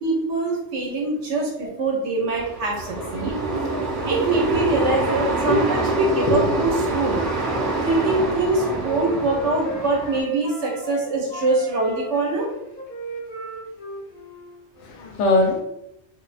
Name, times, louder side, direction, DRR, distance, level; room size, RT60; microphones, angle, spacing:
voice 1, 0.0-3.3 4.1-7.2 7.8-12.5, right 2 dB, 90° right, -2 dB, 1.1 m, -23 dB
sound 1, 2.3-10.2, right 2 dB, 70° right, 0.8 m, -26 dB
voice 2, 3.0-4.6 5.5-5.9 6.2-6.9 14.8-15.6, left 2 dB, 85° left, 2 dB, 0.9 m, -25 dB
Wind instrument woodwind instrument, 8.0-11.0 11.3-14.6, equal, 60° left, 0.5 m, -36 dB
2.6 x 2.0 x 2.4 m, 0.85 s
omnidirectional pair, 1.2 m